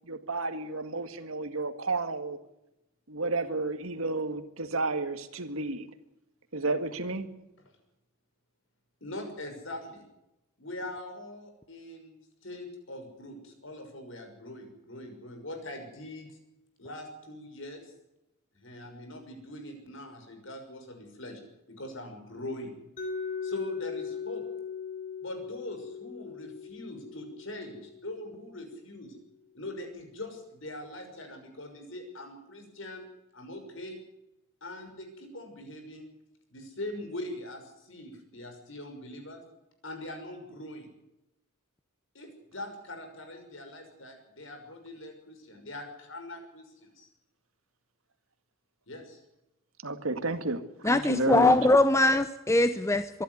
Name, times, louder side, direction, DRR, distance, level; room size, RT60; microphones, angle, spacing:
voice 1, 0.1-2.4 3.1-5.9 6.5-7.3 49.8-51.6, right 2 dB, 80° right, 10 dB, 2.0 m, -31 dB
voice 2, 9.0-10.0 10.6-12.1 12.4-16.4 16.8-17.9 18.5-21.4 21.7-22.7 23.4-24.5 25.2-29.2 29.5-33.0 33.3-34.0 34.6-36.0 36.5-39.4 39.8-40.9 42.1-47.1 48.9-49.2 51.0-51.2, left 1 dB, 65° left, 5 dB, 6.1 m, -42 dB
Mallet percussion, 23.0-28.8, left 6 dB, 40° left, 3.9 m, -39 dB
voice 3, 50.8-53.2, left 2 dB, 15° left, 10 dB, 0.7 m, -22 dB
24.5 x 12.0 x 9.6 m, 0.90 s
head